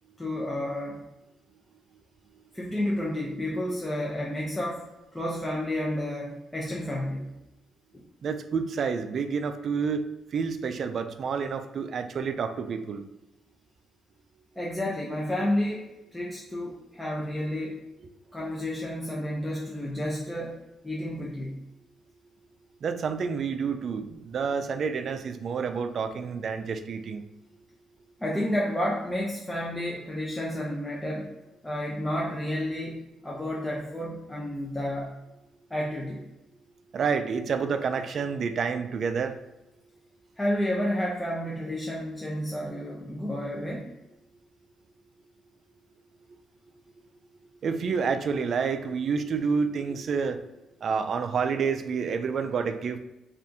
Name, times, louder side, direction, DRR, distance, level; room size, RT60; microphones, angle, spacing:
voice 1, 0.2-1.0 2.5-4.9 5.1-7.3 14.6-17.8 18.3-20.6 20.8-21.6 28.2-31.3 31.6-35.2 35.7-36.2 40.4-43.9, left 1 dB, 10° left, -4 dB, 0.5 m, -31 dB
voice 2, 8.2-10.0 10.3-13.0 18.0-18.1 22.8-27.2 36.9-39.4 47.6-50.4 50.8-53.0, right 5 dB, 55° right, 9 dB, 0.3 m, -29 dB
2.7 x 2.4 x 3.5 m, 0.95 s
cardioid pair, 90°, 0 cm